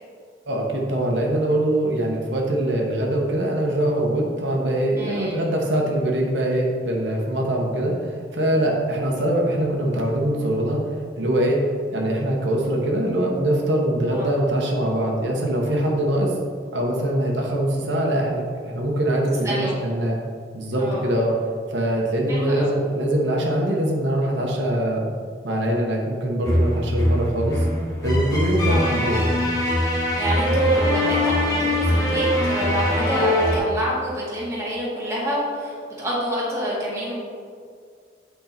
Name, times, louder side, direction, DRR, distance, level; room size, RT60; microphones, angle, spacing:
voice 1, 0.5-11.6 11.9-16.4 16.7-20.2 20.5-21.3 21.7-25.0 25.4-27.6 28.0-29.2, right 1 dB, 85° right, -1 dB, 1.1 m, -23 dB
voice 2, 5.0-5.4 14.1-14.3 19.4-19.8 20.8-21.0 22.3-22.7 28.7-28.9 30.2-37.1, equal, 15° right, -7 dB, 1.9 m, -27 dB
sound 1, 26.4-33.6, left 1 dB, 20° left, 1.3 m, -22 dB
8.1 x 4.6 x 4.4 m, 2.1 s
head